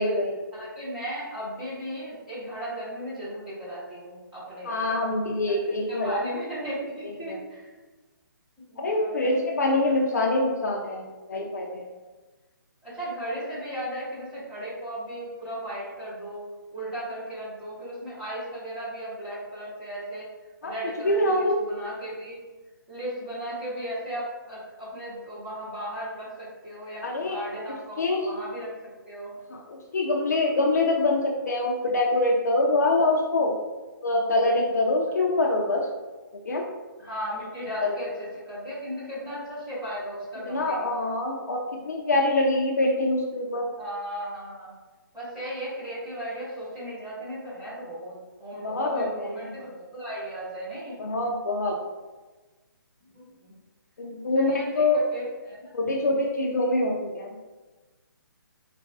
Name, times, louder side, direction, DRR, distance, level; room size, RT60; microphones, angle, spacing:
voice 1, 0.0-0.4 4.7-6.2 7.3-7.4 8.8-11.9 20.6-20.7 21.0-21.6 27.0-27.4 28.0-28.3 29.5-33.5 34.0-35.9 36.4-36.7 37.8-37.9 40.5-43.7 48.6-49.5 51.0-51.8 54.0-55.0 55.7-57.4, left 2 dB, 50° left, 0 dB, 0.5 m, -25 dB
voice 2, 0.5-5.0 5.4-7.7 8.7-9.3 9.8-9.9 12.8-16.4 16.7-20.3 20.6-22.4 22.9-29.3 37.0-41.0 43.8-44.7 45.1-51.0 53.1-53.5 54.3-55.7, equal, 5° right, -14 dB, 1.2 m, -36 dB
3.9 x 2.5 x 3.5 m, 1.2 s
hypercardioid pair, 175°, 12 cm